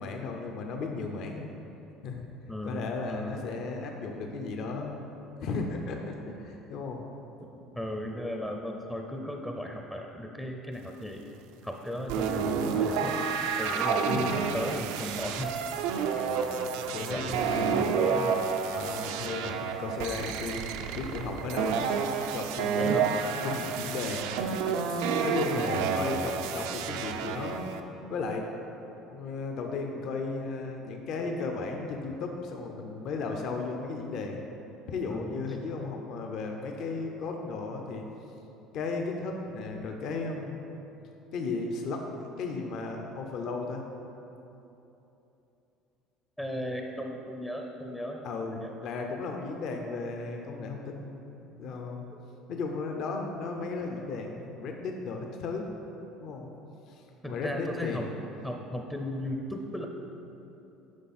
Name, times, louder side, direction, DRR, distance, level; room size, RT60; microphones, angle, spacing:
voice 1, 0.0-1.5 2.0-2.2 2.6-5.0 5.4-7.0 16.3-16.6 16.9-17.9 18.7-21.8 22.3-27.6 28.1-28.4 28.9-34.5 34.9-38.0 38.7-40.6 41.3-43.8 48.2-51.1 51.4-52.1 52.5-55.7 56.2-56.5 56.9-58.1, left 3 dB, 55° left, 2 dB, 0.7 m, -35 dB
voice 2, 2.5-3.4 7.7-11.2 11.6-15.5 17.1-18.4 22.8-23.1 25.6-25.7 35.1-35.3 46.4-48.7 57.2-58.0 58.4-59.9, left 1 dB, 5° left, 2 dB, 0.5 m, -36 dB
sound 1, 12.1-27.8, right 6 dB, 90° right, 0.5 m, -30 dB
9.6 x 5.6 x 4.2 m, 3.0 s
cardioid pair, 150°, 0 cm